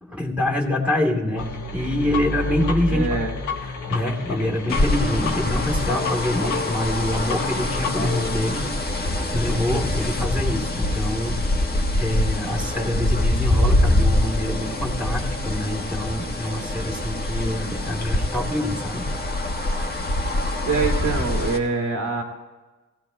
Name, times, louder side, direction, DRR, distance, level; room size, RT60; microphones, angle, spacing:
voice 1, 0.0-3.1 3.6-8.7 9.0-19.1, left 1 dB, 5° right, -1 dB, 2.6 m, -26 dB
sound 1, 1.4-8.4, left 3 dB, 90° left, 1.3 m, -30 dB
voice 2, 2.9-3.3 20.7-22.2, right 4 dB, 70° right, 1 dB, 2.4 m, -24 dB
sound 2, 4.7-21.6, left 1 dB, 30° left, 1.5 m, -24 dB
17.5 x 16.0 x 2.2 m, 1.2 s
cardioid pair, 65°, 30 cm